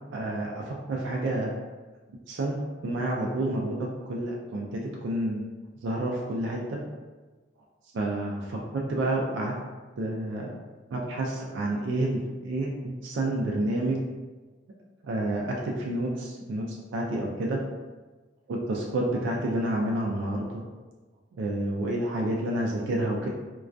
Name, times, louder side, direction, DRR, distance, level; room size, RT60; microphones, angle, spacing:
voice 1, 0.1-1.5 2.3-5.4 5.8-6.8 7.9-9.6 10.0-10.5 10.9-14.0 15.0-17.6 18.5-20.6 21.4-23.3, right 1 dB, 70° right, -1 dB, 0.3 m, -29 dB
2.2 x 2.2 x 2.5 m, 1.3 s
head